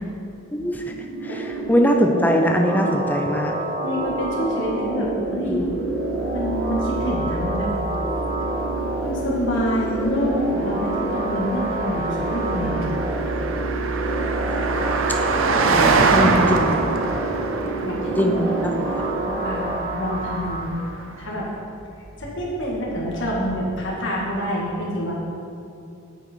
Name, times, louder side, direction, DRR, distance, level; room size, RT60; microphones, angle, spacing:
voice 1, 0.5-0.9 1.2-3.6 5.2-5.7 15.1-15.2 15.6-16.8 18.2-18.8, equal, 10° left, 3 dB, 0.5 m, -22 dB
sound 1, 0.7-20.6, right 2 dB, 50° right, 1.5 m, -27 dB
voice 2, 3.8-5.6 6.3-7.7 9.0-12.8 17.6-18.4 19.2-20.7 21.2-21.5 22.2-25.1, equal, 55° left, -4 dB, 1.8 m, -27 dB
Car passing by, 5.7-21.4, right 4 dB, 70° right, 0.6 m, -26 dB
9.1 x 6.8 x 4.5 m, 2.5 s
head